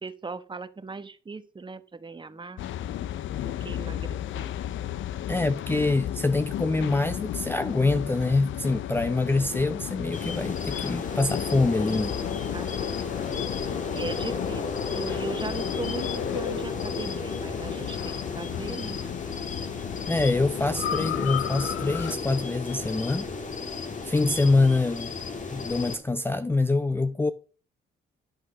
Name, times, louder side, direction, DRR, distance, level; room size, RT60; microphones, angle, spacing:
voice 1, 0.0-2.6 3.4-4.5 9.2-9.6 12.5-13.4 13.9-19.0, right 4 dB, 25° right, 1.1 m, -39 dB
sound 1, 2.6-22.2, left 11 dB, 75° left, 0.6 m, -34 dB
voice 2, 5.3-12.2 20.1-23.3 24.0-25.1 25.5-27.3, left 3 dB, 10° left, 0.5 m, -25 dB
sound 2, 10.1-26.0, left 4 dB, 40° left, 1.9 m, -34 dB
11.0 x 6.1 x 6.0 m
cardioid pair, 90°, 20 cm